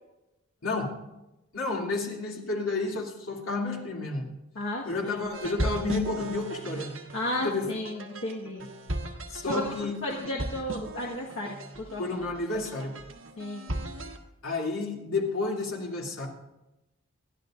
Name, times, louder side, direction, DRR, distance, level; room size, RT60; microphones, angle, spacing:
voice 1, 0.6-1.0 1.5-4.3 4.8-6.9 7.4-7.6 9.3-9.9 12.0-12.9 14.4-16.3, left 3 dB, 85° left, -2 dB, 2.7 m, -31 dB
voice 2, 4.5-5.2 7.1-8.7 9.5-12.0 12.5-12.7 13.4-13.7, left 1 dB, 65° left, -4 dB, 1.5 m, -33 dB
sound 1, 5.3-14.2, right 1 dB, 70° right, 1.5 m, -37 dB
27.0 x 12.5 x 2.5 m, 0.97 s
head